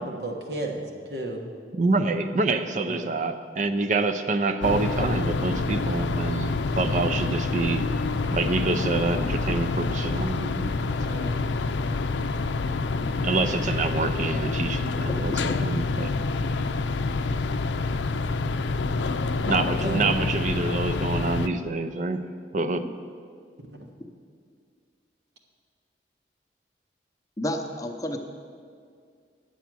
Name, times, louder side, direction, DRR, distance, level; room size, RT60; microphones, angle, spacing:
voice 1, 0.0-1.5 2.9-3.0 10.9-11.4 19.8-20.2 23.8-23.9, right 1 dB, 65° right, 1 dB, 1.4 m, -33 dB
voice 2, 1.7-7.8 8.3-10.8 13.2-16.1 19.4-22.2 22.5-22.9, right 3 dB, 45° right, 9 dB, 0.5 m, -26 dB
sound 1, 4.6-21.5, left 3 dB, 85° left, 0.4 m, -27 dB
voice 3, 27.4-28.2, left 1 dB, 20° left, 4 dB, 0.7 m, -30 dB
10.5 x 7.0 x 6.1 m, 2.2 s
head